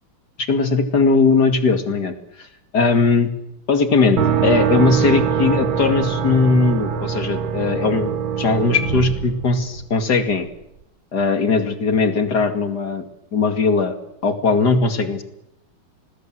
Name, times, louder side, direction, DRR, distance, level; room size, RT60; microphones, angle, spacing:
voice 1, 0.5-2.5 2.7-3.3 3.7-8.1 8.4-10.5 11.1-13.0 13.3-13.9 14.2-15.2, left 4 dB, 50° left, 7 dB, 2.8 m, -19 dB
sound 1, 4.2-10.1, right 8 dB, 70° right, 2.0 m, -23 dB
26.0 x 20.5 x 7.8 m, 0.85 s
omnidirectional pair, 2.4 m